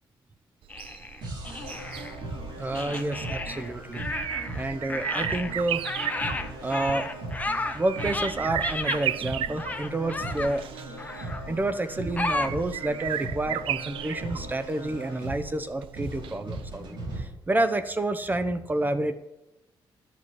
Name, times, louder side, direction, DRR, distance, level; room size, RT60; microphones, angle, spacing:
sound 1, 0.6-16.6 16.9-17.0, right 11 dB, 80° right, 0.4 m, -36 dB
sound 2, 0.7-2.2 2.7-4.6 4.9-9.1 9.6-10.6 11.0-11.5 12.2-12.5, left 2 dB, 15° left, 0.8 m, -33 dB
sound 3, 1.2-17.2, right 2 dB, 60° right, 4.2 m, -38 dB
voice 1, 2.6-4.0 4.5-5.9 6.6-7.1 7.7-19.1, right 2 dB, 20° right, 10 dB, 0.7 m, -29 dB
11.0 x 6.2 x 7.6 m, 0.92 s
cardioid pair, 120°, 9 cm